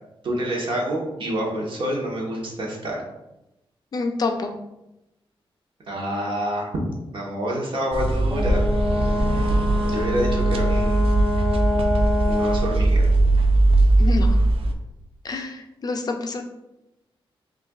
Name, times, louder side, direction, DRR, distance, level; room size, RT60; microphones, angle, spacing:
voice 1, 0.2-3.0 5.9-6.7 7.1-8.6 9.8-11.0 12.3-13.1, equal, 60° right, -2 dB, 1.0 m, -27 dB
voice 2, 3.9-4.5 14.0-14.4 15.2-16.4, left 3 dB, 45° left, 4 dB, 0.4 m, -27 dB
sound 1, 7.9-14.7, right 2 dB, 75° right, 0.4 m, -20 dB
Brass instrument, 8.3-12.8, left 1 dB, 5° right, 1.4 m, -25 dB
6.2 x 2.5 x 2.3 m, 0.92 s
wide cardioid pair, 150°, 9 cm